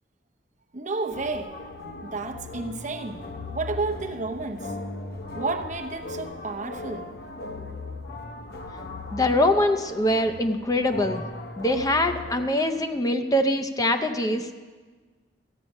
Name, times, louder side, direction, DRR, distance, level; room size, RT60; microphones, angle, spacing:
voice 1, 0.7-1.5 2.0-3.2 3.5-4.7 5.3-7.1, right 3 dB, 45° right, 5 dB, 0.8 m, -31 dB
sound 1, 1.1-12.4, left 2 dB, 65° left, 0.9 m, -38 dB
voice 2, 9.1-11.2 11.6-14.5, left 1 dB, 20° left, 8 dB, 0.6 m, -23 dB
14.5 x 8.2 x 5.4 m, 1.4 s
head